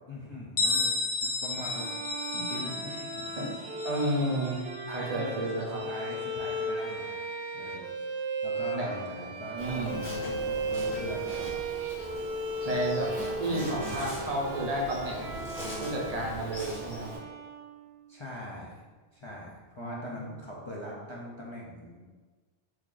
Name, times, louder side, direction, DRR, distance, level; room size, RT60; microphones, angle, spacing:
voice 1, 0.1-0.9 1.2-1.9 2.5-3.5 4.9-7.3 7.5-7.9 8.4-11.3 12.9-13.2 18.1-18.8 19.1-22.0, left 1 dB, 45° left, -4 dB, 0.3 m, -41 dB
Bell, 0.6-6.1, left 3 dB, 90° left, 0.9 m, -33 dB
Bowed string instrument, 1.5-18.1, right 2 dB, 80° right, 0.8 m, -36 dB
voice 2, 3.8-4.6 4.9-5.8 8.7-8.9 9.5-10.0 12.6-15.4 15.8-17.1 19.8-20.3, right 1 dB, 45° right, -2 dB, 0.6 m, -32 dB
Insect, 9.6-17.2, equal, 65° left, 1.6 m, -41 dB
3.1 x 2.3 x 3.7 m, 1.4 s
omnidirectional pair, 1.0 m